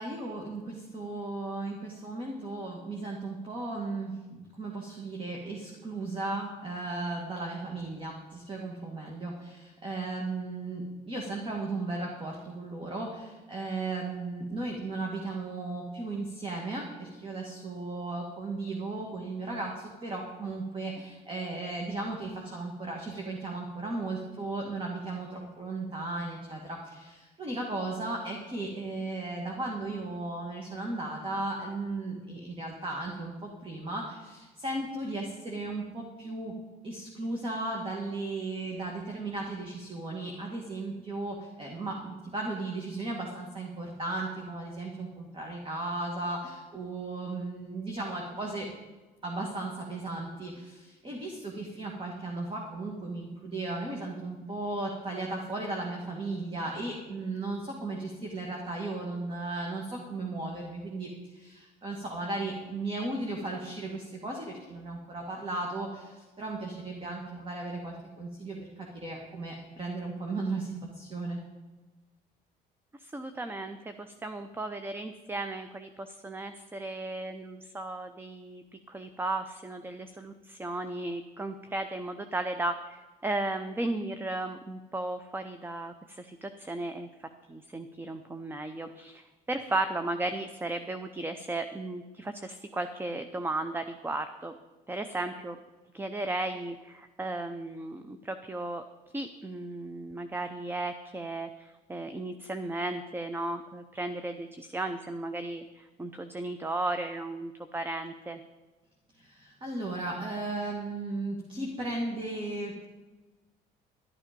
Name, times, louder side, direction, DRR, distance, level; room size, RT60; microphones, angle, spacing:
voice 1, 0.0-36.5 36.8-48.7 49.2-71.4 109.1-112.8, right 2 dB, 30° right, 0 dB, 2.1 m, -36 dB
voice 2, 73.0-87.1 87.5-94.5 94.9-95.6 95.9-98.8 99.1-108.4, right 2 dB, 15° right, 9 dB, 0.6 m, -35 dB
12.0 x 10.0 x 5.2 m, 1.2 s
cardioid pair, 110°, 17 cm